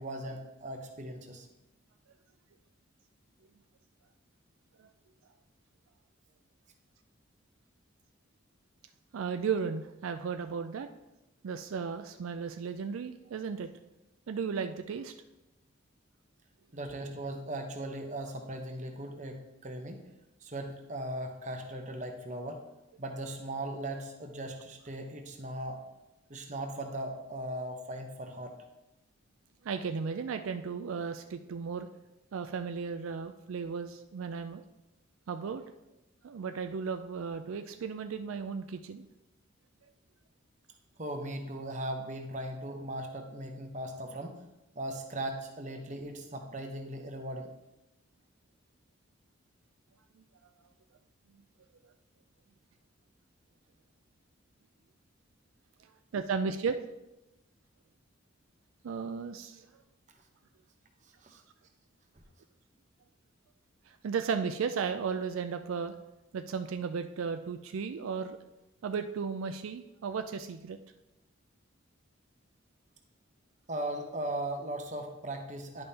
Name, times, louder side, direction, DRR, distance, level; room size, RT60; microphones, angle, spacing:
voice 1, 0.0-1.5 16.7-20.0 20.4-22.6 23.0-25.8 26.3-28.6 41.0-44.4 44.7-47.5 61.2-61.4 73.7-75.8, right 1 dB, 35° right, 3 dB, 0.8 m, -38 dB
voice 2, 9.1-10.9 11.4-13.7 14.3-15.1 29.6-31.9 32.3-34.6 35.3-35.6 36.2-39.1 56.1-56.8 58.8-59.7 63.9-65.9 66.3-68.4 68.8-70.8, right 5 dB, 85° right, 8 dB, 0.4 m, -35 dB
10.5 x 5.4 x 2.8 m, 0.95 s
head